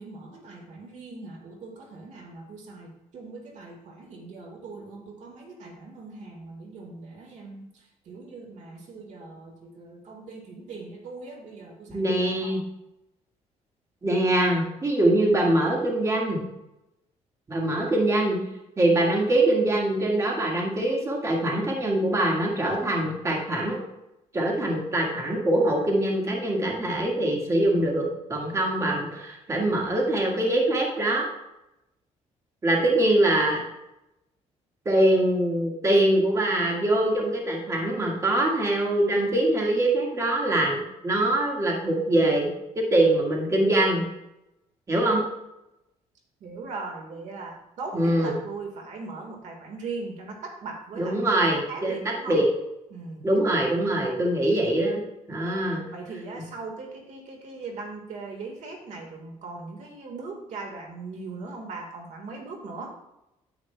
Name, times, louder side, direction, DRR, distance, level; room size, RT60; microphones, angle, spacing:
voice 1, 0.0-7.7 8.0-12.0 12.4-12.6 46.4-51.2 51.5-52.4 52.9-53.2 55.4-62.9, right 3 dB, 65° right, 2 dB, 1.7 m, -39 dB
voice 2, 11.9-12.6 14.0-16.4 17.5-18.4 18.8-23.8 24.3-31.3 32.6-33.6 34.8-42.5 42.7-44.0 44.9-45.2 47.9-48.4 51.0-52.5 53.2-55.0 55.3-55.8, right 1 dB, 25° right, -1 dB, 1.7 m, -23 dB
9.7 x 8.8 x 2.3 m, 0.90 s
cardioid pair, 135°, 13 cm